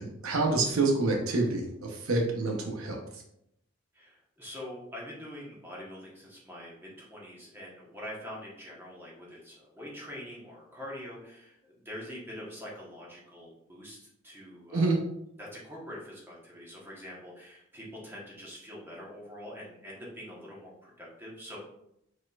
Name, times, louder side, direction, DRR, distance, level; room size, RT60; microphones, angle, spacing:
voice 1, 0.0-3.2 14.7-15.0, right 3 dB, 85° right, 1 dB, 0.8 m, -27 dB
voice 2, 3.9-14.9 15.4-21.6, equal, 10° right, -5 dB, 1.1 m, -44 dB
4.8 x 4.1 x 2.4 m, 0.79 s
head